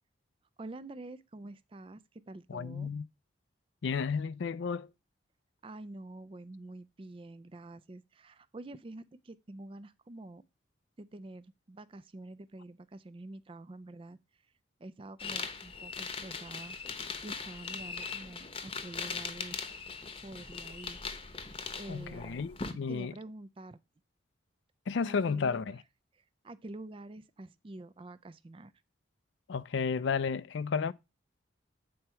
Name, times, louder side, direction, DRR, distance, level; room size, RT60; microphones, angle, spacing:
voice 1, 0.6-2.9 5.6-10.4 11.0-14.2 14.8-19.6 20.2-21.5 21.7-22.6 22.9-23.8 25.1-25.8 26.1-28.7, right 2 dB, 30° right, 0.4 m, -47 dB
voice 2, 2.5-3.0 3.8-4.9 21.9-23.1 24.9-25.8 29.5-30.9, left 5 dB, 70° left, 0.4 m, -32 dB
sound 1, 15.2-22.7, left 5 dB, 30° left, 0.9 m, -40 dB
7.7 x 4.4 x 5.5 m
head